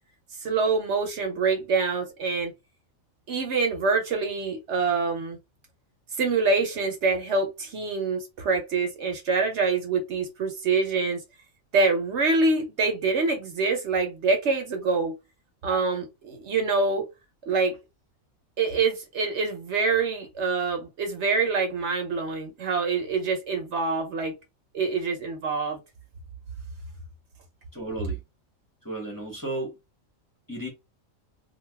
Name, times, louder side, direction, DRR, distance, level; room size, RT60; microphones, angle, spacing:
voice 1, 0.4-2.5 3.3-5.4 6.2-11.2 11.7-15.2 15.6-17.1 17.5-17.7 18.6-24.3 24.7-25.8, right 4 dB, 60° right, 1.0 m, -25 dB
voice 2, 27.7-28.2 28.8-29.7 30.5-30.7, right 2 dB, 20° left, 0.8 m, -33 dB
2.7 x 2.3 x 3.2 m
omnidirectional pair, 1.4 m